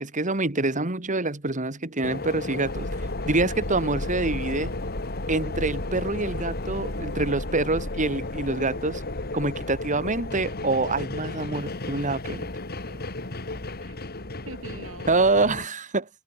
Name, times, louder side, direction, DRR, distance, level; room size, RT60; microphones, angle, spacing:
voice 1, 0.0-2.9 3.2-4.7 5.3-9.0 9.3-12.5 15.1-16.1, right 3 dB, 35° right, 2.3 m, -26 dB
sound 1, 2.0-15.7, left 2 dB, 50° left, 2.7 m, -34 dB
sound 2, 2.6-15.6, left 1 dB, 70° left, 3.6 m, -38 dB
voice 2, 12.9-14.0 14.4-15.4, right 2 dB, 75° right, 7.2 m, -45 dB
head